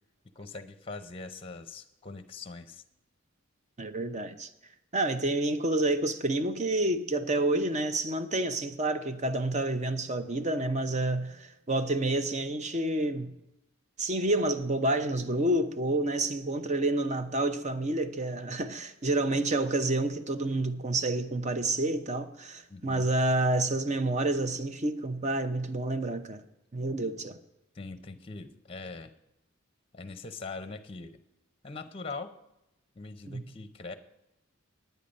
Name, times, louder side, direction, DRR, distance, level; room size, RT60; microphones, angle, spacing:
voice 1, 0.3-2.8 22.7-23.1 27.7-29.1 29.9-31.2 31.6-32.3 33.0-33.9, left 3 dB, 25° left, 11 dB, 0.7 m, -42 dB
voice 2, 3.8-4.5 4.9-13.3 14.0-26.4 26.7-27.4 33.3-33.5, right 2 dB, 35° right, 10 dB, 0.7 m, -29 dB
10.0 x 9.3 x 5.3 m, 0.90 s
head